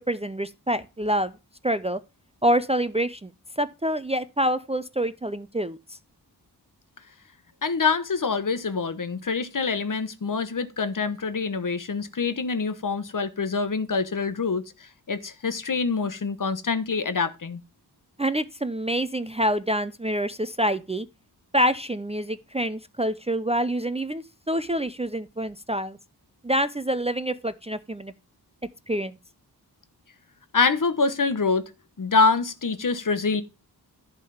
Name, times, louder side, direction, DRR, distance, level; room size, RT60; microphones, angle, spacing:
voice 1, 0.1-1.3 1.6-2.0 2.4-3.3 3.6-5.8 18.2-21.1 21.5-26.0 26.4-28.1 28.9-29.2, equal, 15° right, 0.5 m, -26 dB
voice 2, 7.6-14.6 15.1-17.6 30.5-31.7 32.0-33.4, left 4 dB, 50° left, 1.1 m, -25 dB
11.0 x 3.7 x 6.9 m
wide cardioid pair, 75°, 39 cm